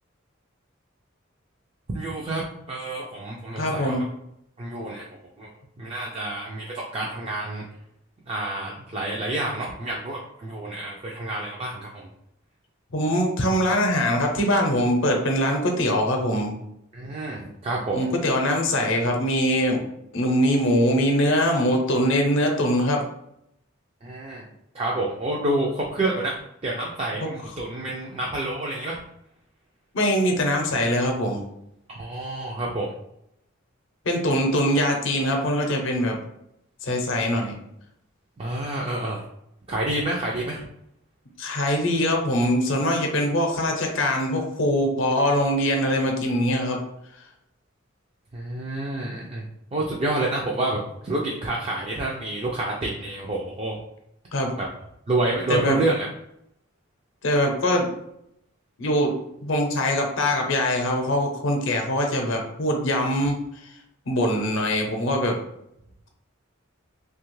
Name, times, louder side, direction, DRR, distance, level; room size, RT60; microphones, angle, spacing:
voice 1, 1.9-4.0 4.6-5.0 5.4-5.5 5.8-7.6 8.3-12.1 16.9-18.1 24.0-24.4 24.7-29.0 31.9-32.9 38.4-39.2 39.7-40.6 48.3-49.4 49.7-53.8 54.6-54.7 55.1-56.1, right 2 dB, 30° right, -3 dB, 0.4 m, -28 dB
voice 2, 3.6-4.0 12.9-16.6 17.9-19.8 20.1-23.0 27.2-27.3 29.9-31.4 34.1-36.2 36.8-37.6 41.4-46.8 54.3-54.5 55.5-55.8 57.2-57.9 58.8-59.1 59.4-63.4 64.1-65.4, equal, 65° left, 2 dB, 0.6 m, -22 dB
2.8 x 2.3 x 3.1 m, 0.77 s
head